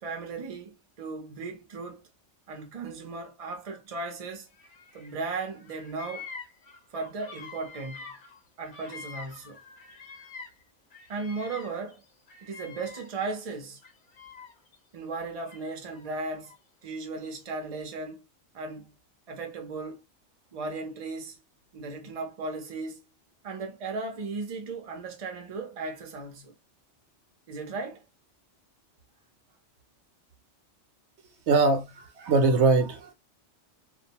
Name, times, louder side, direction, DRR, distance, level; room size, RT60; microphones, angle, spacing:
voice 1, 0.0-2.1 2.5-4.5 4.9-6.3 6.9-8.0 8.6-9.6 11.1-12.0 12.4-13.8 14.9-16.5 16.8-18.2 18.5-18.9 19.3-20.0 20.5-21.4 21.7-23.0 23.4-26.5 27.5-28.0, right 3 dB, 40° right, 0.6 m, -36 dB
Bird vocalization bird call bird song, 4.5-5.3 5.5-10.6 10.9-13.3 13.8-14.8 15.5-16.6, left 5 dB, 50° left, 0.7 m, -46 dB
voice 2, 31.5-33.1, right 3 dB, 70° right, 0.9 m, -22 dB
2.4 x 2.1 x 2.7 m
omnidirectional pair, 1.2 m